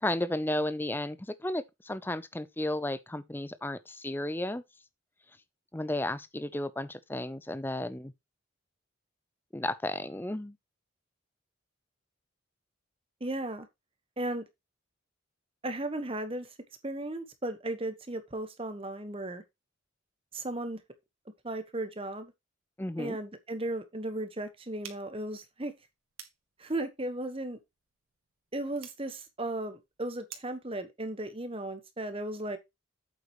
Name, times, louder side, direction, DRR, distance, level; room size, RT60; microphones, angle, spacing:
voice 1, 0.0-4.6 5.7-8.1 9.5-10.5 22.8-23.2, left 1 dB, 10° left, 0.5 m, -33 dB
voice 2, 13.2-13.7 14.2-14.4 15.6-16.5 16.8-19.4 20.3-20.8 21.4-22.3 23.0-25.7 26.6-27.6 28.5-32.6, right 1 dB, 25° right, 1.2 m, -35 dB
sound 1, 24.8-30.7, right 9 dB, 85° right, 1.8 m, -53 dB
8.4 x 7.8 x 3.1 m
head